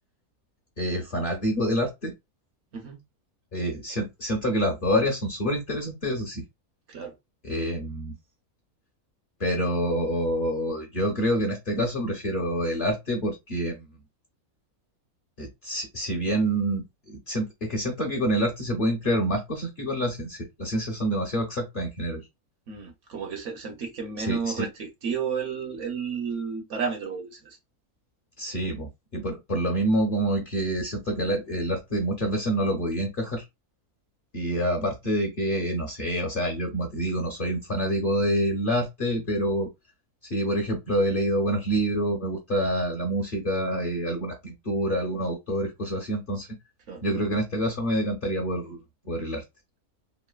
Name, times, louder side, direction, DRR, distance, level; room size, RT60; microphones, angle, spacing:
voice 1, 0.8-2.1 3.5-6.4 7.4-8.1 9.4-13.9 15.4-22.3 24.2-24.7 28.4-33.4 34.3-39.7 40.2-46.5 47.0-48.8 49.0-49.4, equal, 50° left, 0.6 m, -27 dB
voice 2, 22.7-27.6 46.9-47.0, right 6 dB, 65° right, 0.9 m, -32 dB
3.2 x 2.5 x 2.2 m
omnidirectional pair, 1.6 m